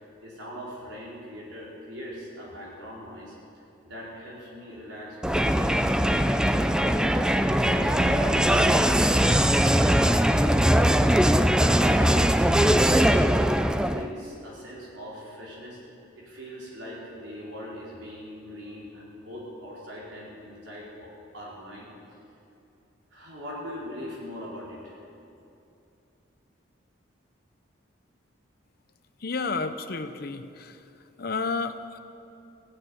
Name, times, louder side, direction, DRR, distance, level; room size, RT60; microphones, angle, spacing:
voice 1, 0.2-3.3 3.8-7.1 7.3-10.6 11.7-13.4 13.7-15.8 16.1-21.9 23.1-25.0, equal, 70° right, -5 dB, 4.7 m, -41 dB
Crowd, 5.2-14.1, equal, 5° right, 0.3 m, -21 dB
voice 2, 29.2-30.8 31.2-32.0, left 4 dB, 50° left, 9 dB, 0.7 m, -31 dB
16.0 x 8.9 x 8.7 m, 2.7 s
head